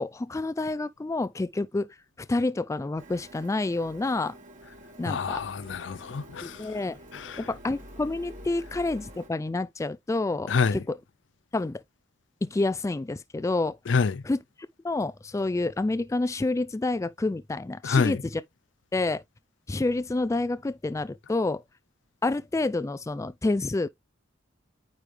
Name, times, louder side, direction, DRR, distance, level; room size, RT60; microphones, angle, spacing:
voice 1, 0.0-1.9 2.2-4.3 5.0-5.4 6.4-7.0 7.4-10.9 11.5-11.8 12.4-13.8 14.3-14.4 14.8-18.2 18.9-19.2 19.7-21.6 22.2-23.9, left 2 dB, 15° left, 0.3 m, -28 dB
Printer, 3.0-9.3, equal, 45° right, 1.9 m, -47 dB
voice 2, 5.1-6.7 7.1-7.5 10.5-10.8 13.9-14.2 17.8-18.2, left 5 dB, 75° left, 0.5 m, -27 dB
9.2 x 3.5 x 3.3 m
head